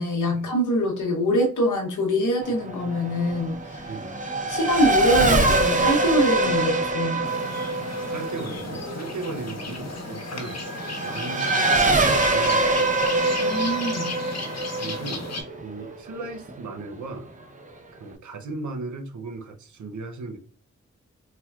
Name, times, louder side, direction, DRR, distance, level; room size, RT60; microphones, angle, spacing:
voice 1, 0.0-3.9 4.5-7.3 13.3-14.1, equal, 90° left, 0.9 m, -24 dB
Race car auto racing / Accelerating revving vroom, 2.4-16.5, right 2 dB, 25° right, 0.7 m, -24 dB
voice 2, 3.8-4.1 8.1-10.6 11.0-13.0 14.7-15.3 15.6-17.3 17.9-20.4, right 3 dB, 75° right, 0.7 m, -36 dB
sound 1, 7.2-15.4, left 3 dB, 60° left, 0.9 m, -35 dB
4.1 x 2.2 x 2.3 m
cardioid pair, 45°, 30 cm